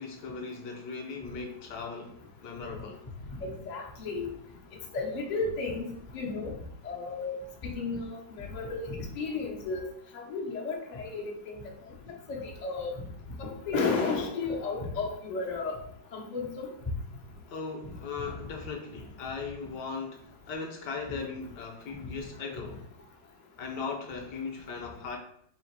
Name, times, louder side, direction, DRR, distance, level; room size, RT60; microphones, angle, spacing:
voice 1, 0.0-2.2 2.4-3.0 17.5-22.9 23.6-25.2, left 4 dB, 70° left, 3 dB, 1.1 m, -38 dB
voice 2, 3.3-4.4 4.9-6.5 6.8-7.3 7.6-9.9 10.1-11.6 12.1-12.9 13.4-15.8 16.1-16.7, left 4 dB, 85° left, -3 dB, 0.3 m, -33 dB
3.8 x 2.8 x 4.5 m, 0.68 s
omnidirectional pair, 2.3 m